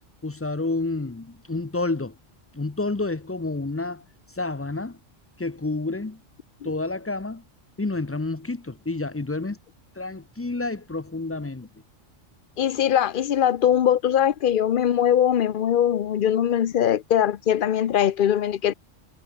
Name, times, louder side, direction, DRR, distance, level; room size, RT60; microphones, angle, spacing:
voice 1, 0.2-2.1 2.5-4.0 4.4-5.0 5.4-6.2 6.6-7.4 7.8-9.6 10.0-11.7, left 3 dB, 25° left, 0.3 m, -29 dB
voice 2, 12.6-18.7, left 10 dB, 50° left, 0.7 m, -21 dB
omnidirectional pair, 1.3 m